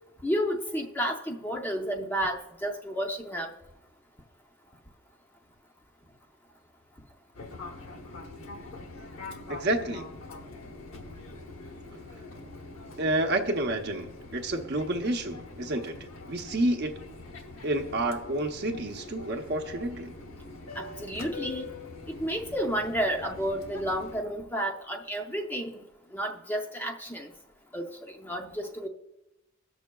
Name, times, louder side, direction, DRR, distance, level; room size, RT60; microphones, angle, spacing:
voice 1, 0.2-3.5 20.8-21.7 22.1-25.8 26.1-27.3 27.7-28.9, equal, 10° left, 2 dB, 0.5 m, -31 dB
Fixed-wing aircraft airplane, 7.3-24.2, left 3 dB, 75° left, 0.9 m, -44 dB
voice 2, 9.5-10.1 13.0-16.0 16.3-17.0 17.6-20.1, right 1 dB, 55° right, 4 dB, 0.7 m, -29 dB
18.0 x 6.2 x 2.3 m, 0.97 s
head